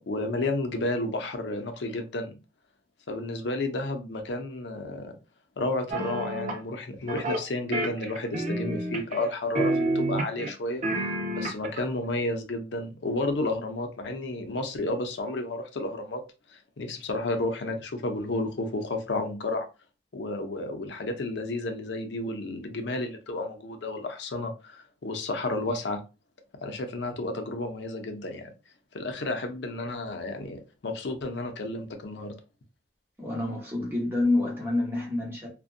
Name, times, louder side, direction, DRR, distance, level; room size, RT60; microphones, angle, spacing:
voice 1, 0.1-2.3 3.1-5.2 5.6-10.8 11.3-16.2 16.5-19.7 20.1-26.0 26.6-28.5 28.9-32.3, left 2 dB, 80° left, 0.5 m, -31 dB
sound 1, 5.9-6.6 7.1-7.4 7.7-9.3 9.6-10.5 10.8-11.8, right 1 dB, 45° right, 0.5 m, -29 dB
voice 2, 33.2-35.5, left 2 dB, 15° right, 1.0 m, -27 dB
2.6 x 2.2 x 2.4 m
head